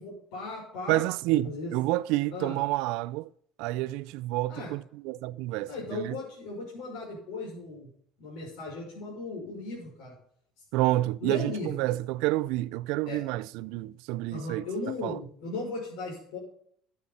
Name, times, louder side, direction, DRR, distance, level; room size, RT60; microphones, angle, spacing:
voice 1, 0.0-1.0 1.4-1.7 2.3-2.6 4.5-4.7 5.7-7.9 8.2-10.1 11.2-11.7 13.0-13.2 14.3-16.4, left 3 dB, 75° left, 6.0 m, -37 dB
voice 2, 0.9-3.3 3.6-6.2 10.7-14.6 15.0-15.2, right 17 dB, 80° right, 0.4 m, -29 dB
14.0 x 8.5 x 4.2 m
cardioid pair, 155°, 0 cm